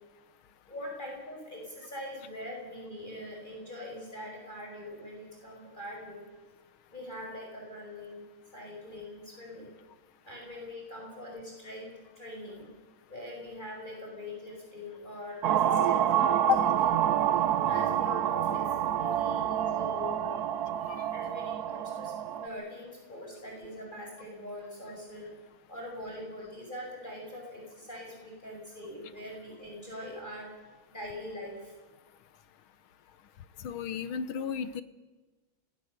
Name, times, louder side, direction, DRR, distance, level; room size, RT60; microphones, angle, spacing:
voice 1, 0.7-6.2 6.9-8.2 8.5-9.7 10.2-12.7 13.1-16.5 17.6-20.3 21.1-25.3 25.7-30.5 30.9-31.7, left 1 dB, 20° left, -1 dB, 5.8 m, -43 dB
sound 1, 15.4-22.5, right 10 dB, 55° right, 1.3 m, -27 dB
voice 2, 33.6-34.8, left 9 dB, 85° left, 13 dB, 1.9 m, -31 dB
26.0 x 20.0 x 6.7 m, 1.3 s
omnidirectional pair, 2.2 m